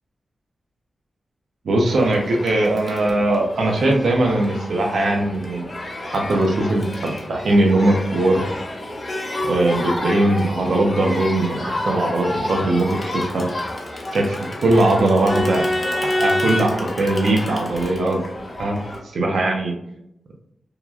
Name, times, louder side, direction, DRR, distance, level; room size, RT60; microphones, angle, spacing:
voice 1, 1.6-5.7 6.1-8.4 9.5-13.5 14.1-15.6 16.2-18.2 18.6-18.8 19.1-19.7, right 2 dB, 85° right, 1 dB, 0.4 m, -20 dB
Crowd, 1.9-19.0, left 1 dB, 35° left, 0.5 m, -29 dB
2.9 x 2.3 x 2.3 m, 0.78 s
wide cardioid pair, 140°, 0 cm